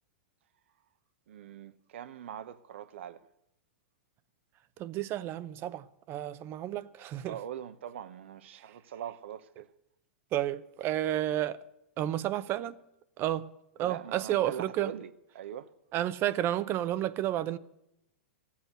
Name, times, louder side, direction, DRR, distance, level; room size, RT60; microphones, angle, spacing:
voice 1, 1.3-3.3 7.2-9.7 13.8-15.7, right 10 dB, 70° right, 0.8 m, -42 dB
voice 2, 4.8-7.3 10.3-11.6 12.0-12.8 13.2-13.5 13.8-14.9 15.9-17.6, right 12 dB, 35° right, 0.6 m, -31 dB
15.0 x 8.4 x 7.8 m
hypercardioid pair, 115°, 7 cm